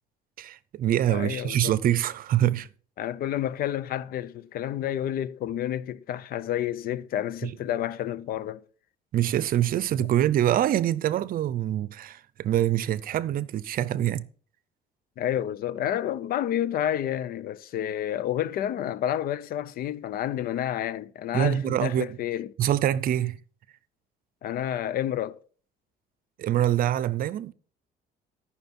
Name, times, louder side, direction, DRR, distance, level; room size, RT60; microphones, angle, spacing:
voice 1, 0.4-2.7 7.4-7.5 9.1-14.3 21.3-22.2 22.6-23.4 26.4-27.5, right 11 dB, 55° right, 0.6 m, -25 dB
voice 2, 1.1-1.8 3.0-8.6 15.2-22.5 24.4-25.4, left 11 dB, 60° left, 0.6 m, -30 dB
13.0 x 5.9 x 4.3 m
cardioid pair, 110°, 17 cm